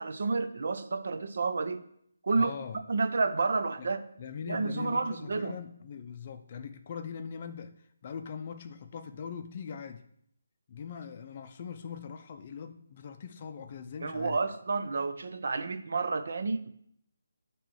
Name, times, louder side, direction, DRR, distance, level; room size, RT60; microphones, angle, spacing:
voice 1, 0.0-1.8 2.2-2.5 2.9-4.0 4.5-5.6 14.0-16.7, right 4 dB, 60° right, 10 dB, 0.6 m, -30 dB
voice 2, 2.4-2.8 3.8-3.9 4.2-10.0 10.7-14.4, left 6 dB, 30° left, 8 dB, 0.5 m, -41 dB
9.0 x 3.1 x 6.3 m, 0.70 s
hypercardioid pair, 170°, 0 cm